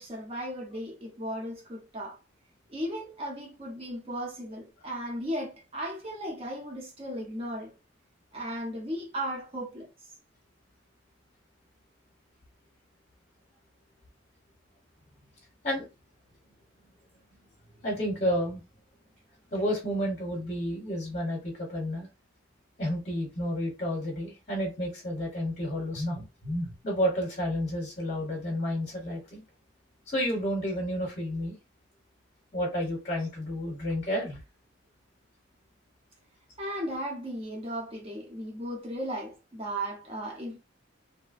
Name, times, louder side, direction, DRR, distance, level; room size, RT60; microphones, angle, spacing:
voice 1, 0.0-2.2 2.7-7.7 8.3-9.9 36.6-40.6, equal, 30° right, 0.8 m, -36 dB
voice 2, 17.8-18.6 19.5-22.1 22.8-29.4 30.1-31.6 32.5-34.4, equal, 35° left, 0.9 m, -31 dB
2.8 x 2.1 x 2.4 m
head